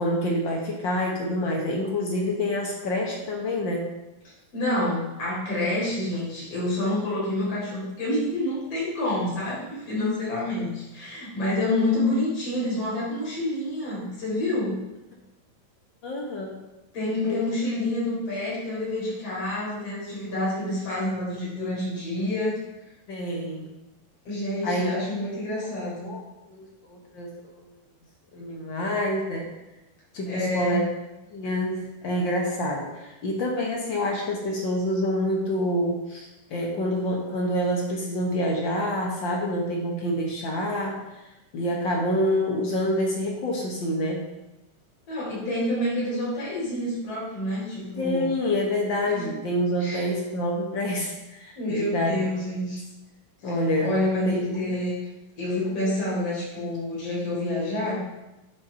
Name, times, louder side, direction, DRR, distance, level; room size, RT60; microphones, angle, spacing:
voice 1, 0.0-3.9 16.0-16.6 17.2-17.4 23.1-23.7 24.6-24.9 25.9-26.2 26.5-27.7 28.3-29.5 30.1-30.8 31.3-41.0 41.5-44.2 48.0-52.3 53.4-53.9 54.3-54.4, left 1 dB, 70° left, -1 dB, 1.1 m, -27 dB
voice 2, 4.5-14.8 16.9-22.6 24.2-26.1 30.3-30.8 45.1-48.3 49.1-49.4 49.8-50.1 51.6-52.8 53.4-55.0 55.4-58.0, left 1 dB, 45° left, -7 dB, 4.8 m, -28 dB
10.5 x 5.5 x 5.6 m, 1.0 s
omnidirectional pair, 4.1 m